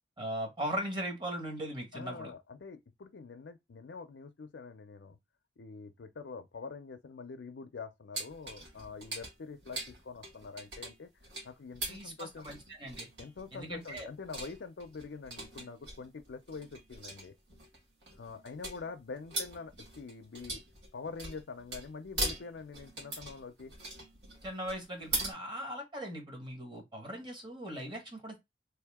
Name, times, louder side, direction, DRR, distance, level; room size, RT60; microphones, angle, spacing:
voice 1, 0.2-2.3 11.9-13.1 13.5-14.1 24.4-28.4, equal, 25° right, 1.4 m, -39 dB
voice 2, 1.9-5.2 5.6-11.1 11.4-12.5 13.2-17.3 18.1-20.6 20.9-23.7, left 4 dB, 75° left, 0.5 m, -45 dB
sound 1, 8.1-25.3, right 2 dB, 75° right, 1.9 m, -41 dB
3.4 x 2.8 x 3.4 m
head